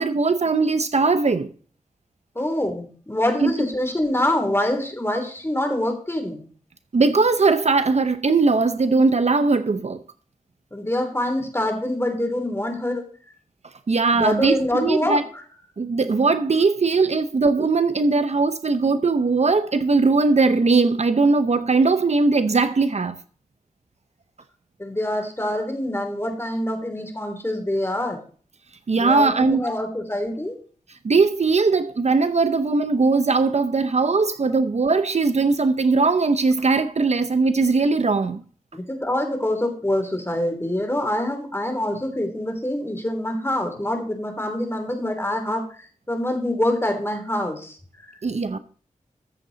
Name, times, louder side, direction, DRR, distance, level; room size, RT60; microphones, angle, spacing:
voice 1, 0.0-1.5 3.4-3.7 6.9-10.0 13.9-15.2 15.8-23.2 28.9-29.6 31.0-38.4 48.2-48.6, right 3 dB, 55° right, 0.8 m, -20 dB
voice 2, 2.3-6.4 10.7-13.0 14.1-15.2 24.8-28.2 28.9-30.6 38.7-45.6 46.1-48.1, left 1 dB, 20° left, 2.9 m, -25 dB
14.0 x 7.5 x 4.0 m
wide cardioid pair, 60°, 13 cm